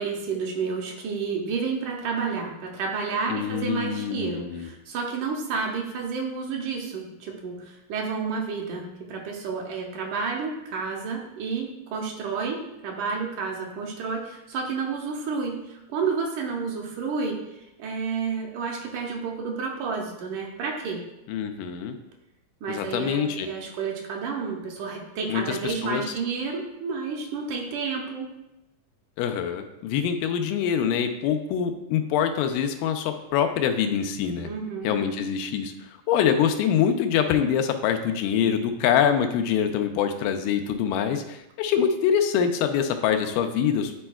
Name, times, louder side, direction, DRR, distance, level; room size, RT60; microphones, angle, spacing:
voice 1, 0.0-17.4 17.8-21.0 22.6-28.3 34.4-34.9, right 5 dB, 75° right, 0 dB, 2.1 m, -30 dB
voice 2, 3.3-4.7 21.3-22.0 22.7-23.5 25.3-26.0 29.2-34.5 34.8-35.7 36.1-44.0, left 8 dB, 90° left, 7 dB, 2.2 m, -25 dB
9.9 x 4.3 x 2.3 m, 0.91 s
omnidirectional pair, 3.7 m